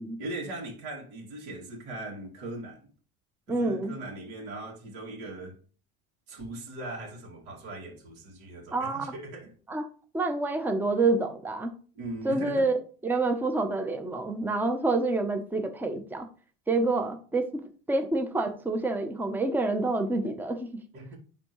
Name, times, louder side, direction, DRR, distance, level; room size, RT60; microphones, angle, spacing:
voice 1, 0.2-2.9 3.5-5.6 6.3-9.5 11.9-12.7 20.9-21.2, right 2 dB, 70° right, 2.4 m, -39 dB
voice 2, 3.5-3.9 8.7-9.1 9.7-9.8 10.1-11.7 12.2-12.8 13.0-16.3 16.7-20.7, right 2 dB, 5° right, 0.7 m, -27 dB
10.0 x 3.6 x 3.1 m
supercardioid pair, 125°, 32 cm